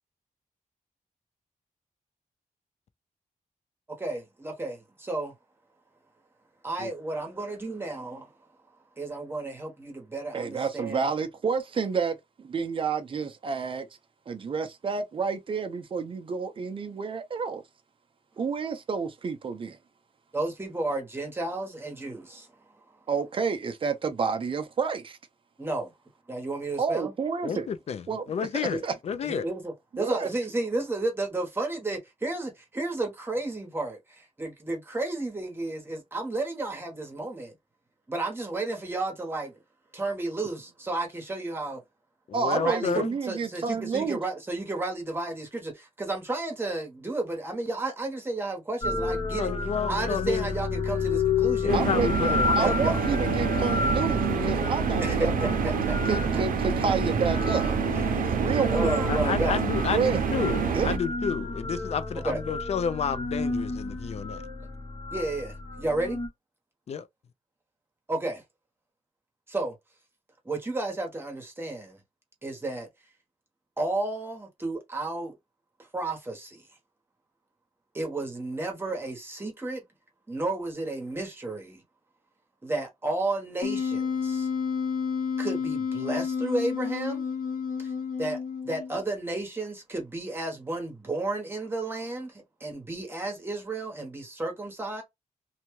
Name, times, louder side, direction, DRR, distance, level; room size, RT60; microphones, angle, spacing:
voice 1, 4.0-5.3 6.6-8.3 9.0-11.0 20.3-22.5 25.6-25.9 26.3-27.1 28.7-28.8 29.2-37.5 38.1-39.5 39.9-41.8 42.5-49.5 49.9-51.7 52.2-53.0 55.0-55.5 56.8-56.9 57.9-59.6 62.2-62.4 65.1-66.2 68.1-68.4 69.5-69.7 70.4-72.0 72.4-72.9 73.8-75.3 75.9-76.6 77.9-79.8 80.3-81.8 82.6-84.5 85.4-87.3 87.8-87.9 88.2-88.4 88.6-95.0, right 2 dB, 15° right, 1.0 m, -32 dB
voice 2, 10.3-13.9 14.3-17.6 18.4-19.8 23.1-25.2 26.8-27.7 28.1-28.2 28.5-28.9 29.9-30.3 42.3-44.2 51.7-52.3 52.6-55.6 56.1-57.8 58.3-59.0 59.9-60.2 60.7-60.9, right 5 dB, 40° right, 0.5 m, -29 dB
voice 3, 27.4-29.5 42.3-43.1 49.3-50.5 51.6-52.5 59.1-64.4 66.9-67.1, left 7 dB, 50° left, 0.4 m, -30 dB
sound 1, 48.8-66.3, left 4 dB, 30° left, 0.8 m, -31 dB
sound 2, 51.7-61.0, right 6 dB, 85° right, 0.6 m, -27 dB
Wind instrument woodwind instrument, 83.6-89.0, left 6 dB, 85° left, 0.9 m, -30 dB
2.7 x 2.2 x 3.0 m
wide cardioid pair, 175°, 14 cm